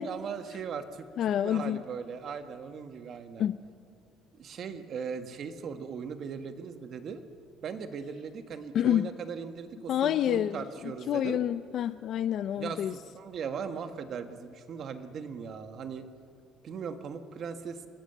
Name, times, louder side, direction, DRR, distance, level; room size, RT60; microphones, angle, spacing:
voice 1, 0.0-1.1 1.4-3.5 4.4-7.2 7.6-11.4 12.6-16.1 16.6-17.8, right 6 dB, 45° right, 8 dB, 1.5 m, -38 dB
voice 2, 1.2-1.8 3.4-3.6 8.7-9.1 9.9-10.6 11.1-12.9, left 10 dB, 55° left, 13 dB, 0.5 m, -27 dB
25.0 x 17.5 x 8.1 m, 2.3 s
cardioid pair, 135°, 0 cm